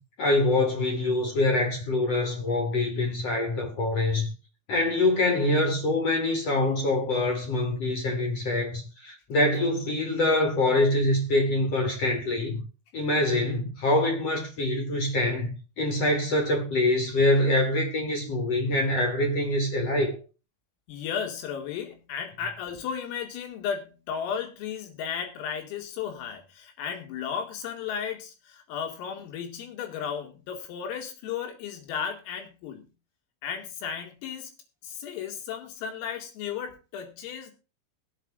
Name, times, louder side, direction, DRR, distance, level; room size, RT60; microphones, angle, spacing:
voice 1, 0.2-4.3 4.7-12.6 12.9-20.2, left 2 dB, 35° left, 3.2 m, -25 dB
voice 2, 20.9-32.9 33.4-34.5 34.8-37.5, left 7 dB, 85° left, 5.0 m, -34 dB
21.0 x 8.2 x 2.5 m
omnidirectional pair, 5.9 m